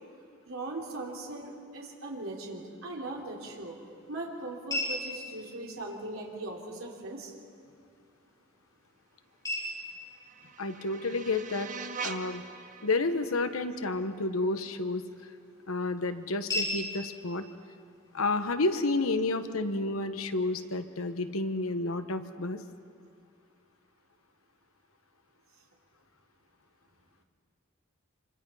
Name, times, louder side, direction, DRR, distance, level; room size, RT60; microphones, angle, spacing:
voice 1, 0.4-3.8 4.1-7.3, right 2 dB, 75° right, -1 dB, 3.2 m, -39 dB
sound 1, 2.9-18.9, left 1 dB, 20° left, 5.9 m, -42 dB
sound 2, 9.7-14.7, right 5 dB, 40° right, 1.3 m, -43 dB
voice 2, 10.6-11.7 12.0-12.4 12.8-15.0 15.7-17.4 18.1-22.6, left 2 dB, 90° left, 9 dB, 1.2 m, -30 dB
27.0 x 25.5 x 5.7 m, 2.4 s
head